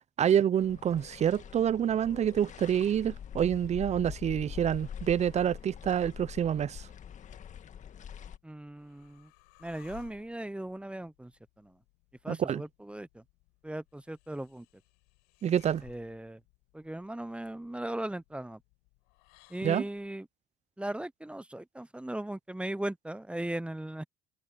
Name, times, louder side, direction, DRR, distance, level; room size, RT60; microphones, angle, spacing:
voice 1, 0.2-6.9 12.3-12.6 15.4-15.8 19.6-19.8, right 9 dB, 45° right, 0.7 m, -27 dB
sound 1, 0.6-8.4, left 8 dB, 50° left, 1.9 m, -44 dB
sound 2, 8.4-20.2, left 29 dB, 80° left, 6.7 m, -61 dB
voice 2, 8.4-9.3 9.6-11.3 11.6-11.8 12.2-13.2 13.6-14.7 15.8-16.4 16.7-18.6 19.5-20.3 20.8-24.0, right 1 dB, 5° right, 0.9 m, -38 dB
hypercardioid pair, 60°, 16 cm